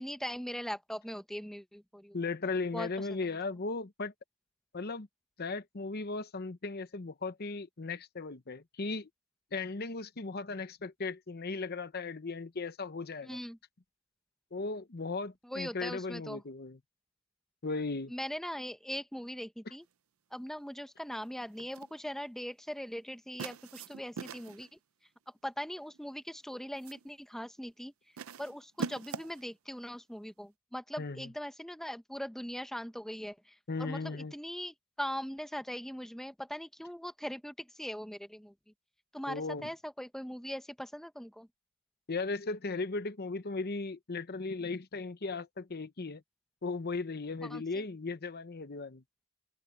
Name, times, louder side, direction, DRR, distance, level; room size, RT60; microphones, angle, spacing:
voice 1, 0.0-2.2 2.7-3.1 13.2-13.6 15.4-16.4 18.1-19.8 20.3-24.7 25.4-27.9 28.4-38.5 39.1-41.5 47.4-47.8, equal, ahead, 0.8 m, -40 dB
voice 2, 2.1-4.1 4.7-5.1 5.4-9.1 9.5-13.4 14.5-16.8 17.6-18.1 31.0-31.3 33.7-34.3 39.3-39.7 42.1-46.2 46.6-49.0, left 3 dB, 45° left, 0.8 m, -37 dB
sound 1, 21.6-22.0 23.4-24.7 25.8-26.1 26.5-27.1 28.2-29.5, right 5 dB, 70° right, 0.5 m, -42 dB
head